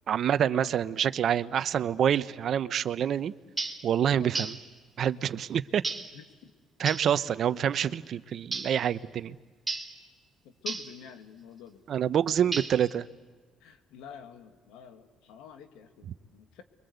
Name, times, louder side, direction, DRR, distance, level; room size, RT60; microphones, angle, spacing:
voice 1, 0.1-3.3 3.8-4.6 5.0-5.8 6.8-9.4 11.9-13.1, right 9 dB, 60° right, 15 dB, 0.8 m, -27 dB
sound 1, 3.6-3.9 4.3-4.7 5.8-6.2 6.9-7.1 8.5-8.8 9.7-10.0 10.7-11.0 12.5-12.9, right 3 dB, 20° right, 3.1 m, -34 dB
voice 2, 6.1-6.5 10.4-11.8 13.6-16.6, left 7 dB, 85° left, 7 dB, 2.0 m, -47 dB
29.5 x 23.0 x 8.1 m, 1.4 s
supercardioid pair, 75°, 0 cm